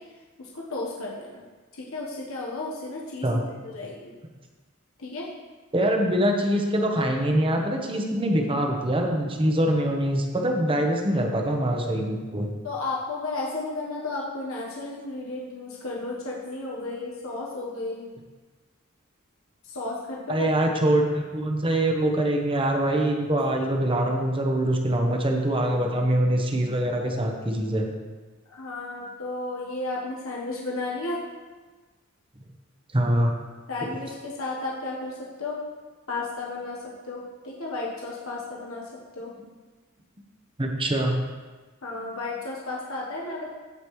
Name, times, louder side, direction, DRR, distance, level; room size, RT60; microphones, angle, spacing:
voice 1, 0.0-1.4 1.7-4.1 5.0-5.3 12.6-18.1 19.6-20.6 28.5-31.2 33.7-35.6 36.1-39.3 41.8-43.5, left 2 dB, 85° left, -3 dB, 1.2 m, -33 dB
voice 2, 5.7-12.5 20.3-27.9 32.9-33.3 40.6-41.1, right 1 dB, 25° right, 2 dB, 0.9 m, -24 dB
15.0 x 5.2 x 3.1 m, 1.3 s
head